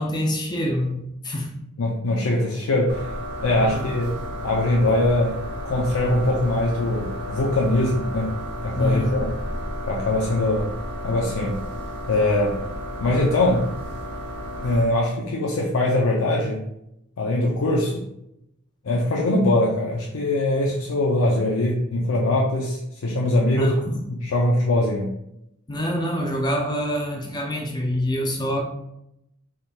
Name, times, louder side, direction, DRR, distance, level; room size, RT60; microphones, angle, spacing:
voice 1, 0.0-1.6 3.6-4.0 8.8-9.2 23.6-24.0 25.7-28.6, equal, 20° left, 0 dB, 0.4 m, -26 dB
voice 2, 1.8-3.1 3.4-4.1 4.4-5.4 5.6-8.4 8.6-9.3 9.9-10.7 11.0-11.6 12.1-12.6 13.0-13.7 14.6-16.6 17.2-18.0 18.8-23.7 24.2-25.1, left 1 dB, 70° left, -2 dB, 0.5 m, -22 dB
sound 1, 2.9-14.8, equal, 55° right, 0.9 m, -32 dB
4.3 x 3.4 x 2.3 m, 0.82 s
head